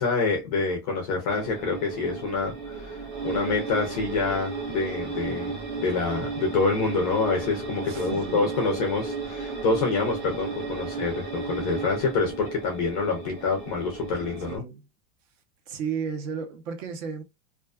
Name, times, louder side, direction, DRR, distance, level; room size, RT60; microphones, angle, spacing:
voice 1, 0.0-14.6, left 4 dB, 30° left, 0.3 m, -27 dB
sound 1, 1.3-14.6, right 4 dB, 30° right, 0.8 m, -34 dB
voice 2, 7.9-8.4 14.5-14.8 15.7-17.2, right 6 dB, 60° right, 0.9 m, -33 dB
2.4 x 2.4 x 2.3 m
supercardioid pair, 165°, 44 cm